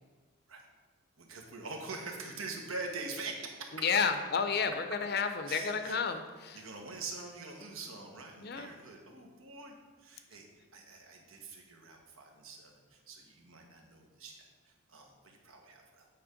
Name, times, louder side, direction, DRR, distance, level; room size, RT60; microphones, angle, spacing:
voice 1, 1.2-3.7 5.5-6.0 6.5-10.5 10.7-16.1, right 3 dB, 85° right, 2 dB, 1.3 m, -44 dB
voice 2, 3.7-6.6 8.4-8.7, left 5 dB, 50° left, 8 dB, 0.6 m, -31 dB
8.8 x 4.3 x 5.2 m, 1.4 s
head